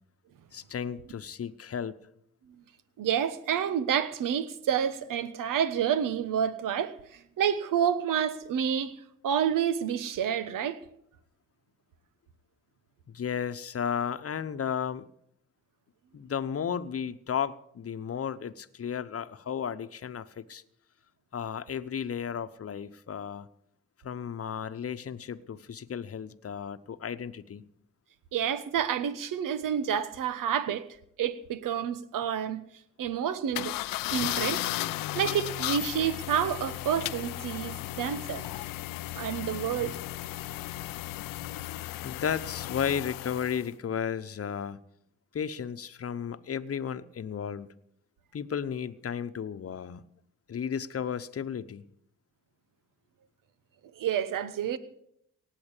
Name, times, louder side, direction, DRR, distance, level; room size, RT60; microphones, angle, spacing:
voice 1, 0.5-2.0 13.1-15.1 16.1-20.6 21.3-23.5 24.0-27.7 42.0-44.8 45.3-47.7 48.3-50.0 50.5-51.8, left 7 dB, 45° left, 1.0 m, -34 dB
voice 2, 3.0-8.9 9.2-10.8 28.3-30.9 31.2-32.6 33.0-33.7 34.1-38.5 39.1-40.0 54.0-54.8, right 9 dB, 75° right, 1.2 m, -29 dB
sound 1, 33.5-43.7, left 17 dB, 85° left, 0.5 m, -35 dB
18.0 x 7.8 x 8.4 m
supercardioid pair, 60°, 33 cm